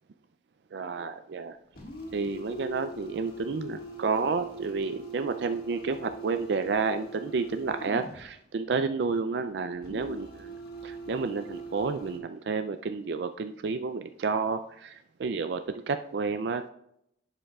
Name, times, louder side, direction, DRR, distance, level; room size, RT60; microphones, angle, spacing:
voice 1, 0.7-1.6 2.1-10.6 10.8-16.7, right 4 dB, 75° right, 8 dB, 0.4 m, -30 dB
sound 1, 1.8-8.3 9.8-12.2, right 2 dB, 55° left, 1.7 m, -42 dB
11.0 x 7.8 x 2.3 m, 0.75 s
head